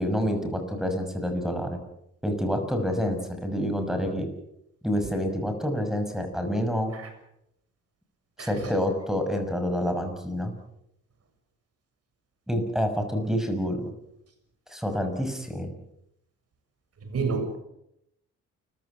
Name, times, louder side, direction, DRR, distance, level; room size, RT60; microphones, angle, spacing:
voice 1, 0.0-1.8 2.2-4.3 4.8-6.9 8.4-10.5 12.5-13.9 14.7-15.7, equal, ahead, 6 dB, 6.2 m, -28 dB
voice 2, 8.4-8.7 17.1-17.6, right 4 dB, 55° right, 7 dB, 7.1 m, -29 dB
29.0 x 16.0 x 8.1 m, 0.81 s
cardioid pair, 90°, 30 cm